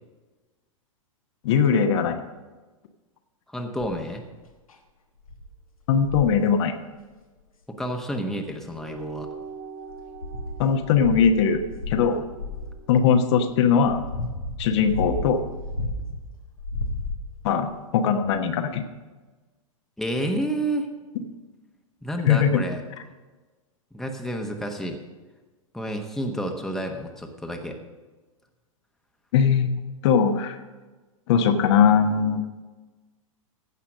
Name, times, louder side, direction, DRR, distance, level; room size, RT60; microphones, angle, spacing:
voice 1, 1.4-2.2 5.9-6.8 10.6-12.2 12.9-14.0 14.6-15.4 17.4-18.8 22.3-22.6 29.3-30.6 31.3-32.4, left 7 dB, 55° left, 5 dB, 1.1 m, -20 dB
voice 2, 3.5-4.2 7.7-9.3 20.0-20.9 21.2-21.3 22.0-22.8 23.9-25.0 25.7-27.8, right 1 dB, ahead, 3 dB, 1.2 m, -30 dB
sound 1, 3.8-4.1 4.7-4.8 5.3-5.5 6.0-6.4 7.8-7.9 8.7-9.4 9.9-12.8 13.5-16.2 16.6-17.5 18.3-18.4, left 2 dB, 85° left, 1.4 m, -33 dB
sound 2, 8.7-13.5, right 5 dB, 70° right, 3.2 m, -43 dB
15.5 x 5.7 x 6.3 m, 1.3 s
hypercardioid pair, 105°, 17 cm